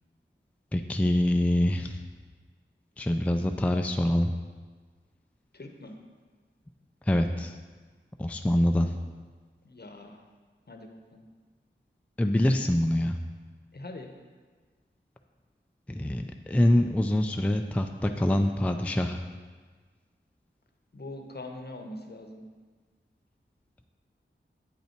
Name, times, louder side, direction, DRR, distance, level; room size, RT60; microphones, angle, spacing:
voice 1, 0.7-2.0 3.0-4.3 7.1-7.5 8.2-9.0 12.2-13.2 15.9-19.2, left 1 dB, 5° left, 5 dB, 0.4 m, -25 dB
voice 2, 5.5-6.0 9.6-10.2 10.7-11.3 13.7-14.1 20.9-22.4, left 2 dB, 55° left, 4 dB, 0.8 m, -43 dB
8.1 x 5.5 x 4.4 m, 1.4 s
wide cardioid pair, 65°, 20 cm